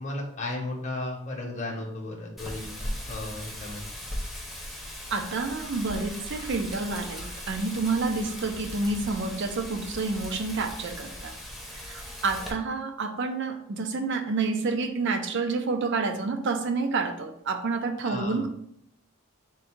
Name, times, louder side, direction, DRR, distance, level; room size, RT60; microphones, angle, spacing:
voice 1, 0.0-3.8 18.0-18.5, left 2 dB, 35° left, 0 dB, 0.8 m, -35 dB
Wind, 2.4-12.5, equal, ahead, 0.7 m, -38 dB
voice 2, 5.1-11.3 11.8-18.5, right 3 dB, 60° right, 7 dB, 0.5 m, -29 dB
3.7 x 2.6 x 4.4 m, 0.72 s
head